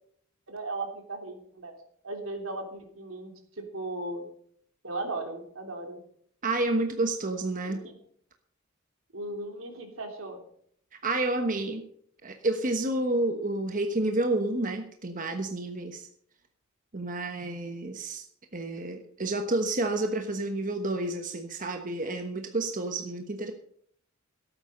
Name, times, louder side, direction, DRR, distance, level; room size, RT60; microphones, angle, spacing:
voice 1, 0.5-1.7 2.0-4.3 4.8-6.0 7.7-7.9 9.1-10.4, right 2 dB, 70° right, 3 dB, 3.2 m, -37 dB
voice 2, 6.4-7.8 11.0-11.8 12.2-16.1 16.9-18.2 18.5-23.5, right 2 dB, 40° right, 5 dB, 1.2 m, -30 dB
17.0 x 9.0 x 5.4 m, 0.64 s
head